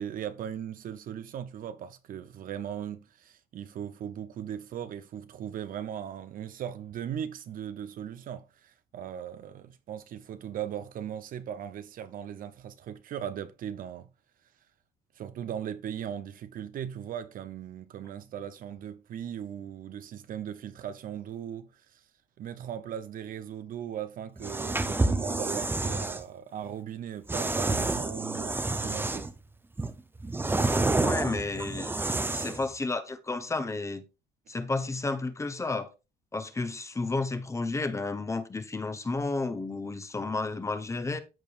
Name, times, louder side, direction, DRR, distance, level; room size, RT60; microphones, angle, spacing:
voice 1, 0.0-14.1 15.1-22.1 22.4-29.3, right 9 dB, 55° right, 0.7 m, -38 dB
sound 1, 24.4-26.2 27.3-29.4 29.8-32.7, right 2 dB, 10° right, 0.7 m, -29 dB
voice 2, 31.0-32.0 32.3-34.0 34.5-35.9 36.3-41.2, left 3 dB, 15° left, 1.0 m, -32 dB
13.5 x 4.6 x 2.5 m
cardioid pair, 110°, 17 cm